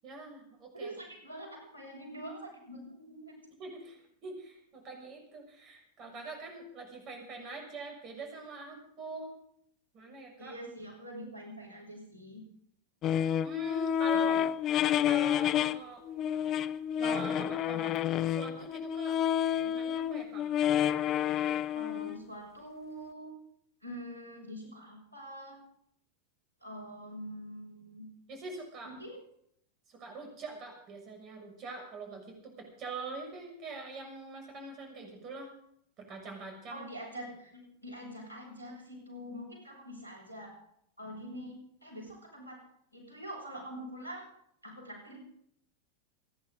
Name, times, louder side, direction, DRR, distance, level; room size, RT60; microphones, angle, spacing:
voice 1, 0.0-0.9 3.5-9.3 9.9-10.5 13.4-14.4 15.0-16.0 17.0-19.2 19.6-20.5 28.3-28.9 29.9-35.5 36.0-36.9, right 3 dB, 35° right, 2 dB, 6.7 m, -44 dB
voice 2, 0.7-3.3 10.4-12.4 14.0-14.4 21.7-23.3 23.8-25.6 26.6-28.1 29.0-29.2 36.7-40.5 41.0-42.6 42.9-44.3 44.6-45.2, equal, 85° left, 1 dB, 6.7 m, -45 dB
sound 1, 13.0-15.8 16.1-22.2, left 10 dB, 35° left, 0.7 m, -29 dB
28.5 x 11.0 x 4.0 m, 0.69 s
figure-of-eight pair, 90°, 0 cm